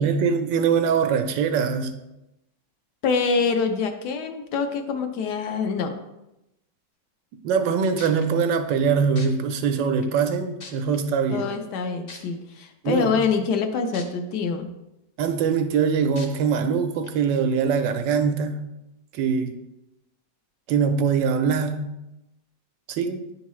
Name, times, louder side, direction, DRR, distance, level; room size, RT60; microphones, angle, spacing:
voice 1, 0.0-1.9 7.4-11.5 12.8-13.1 15.2-18.7 19.1-19.6 20.7-21.9 22.9-23.2, right 6 dB, 85° right, 8 dB, 1.3 m, -23 dB
voice 2, 3.0-5.9 11.3-14.7, left 5 dB, 75° left, 6 dB, 1.2 m, -25 dB
sound 1, 7.6-7.7 8.0-8.2 9.2-9.3 10.0-10.1 10.6-11.0 12.1-12.2 13.9-14.0 14.6-14.7 16.2-16.3 17.0-17.1, left 3 dB, 45° left, 0.8 m, -40 dB
9.9 x 3.7 x 3.1 m, 0.92 s
omnidirectional pair, 1.9 m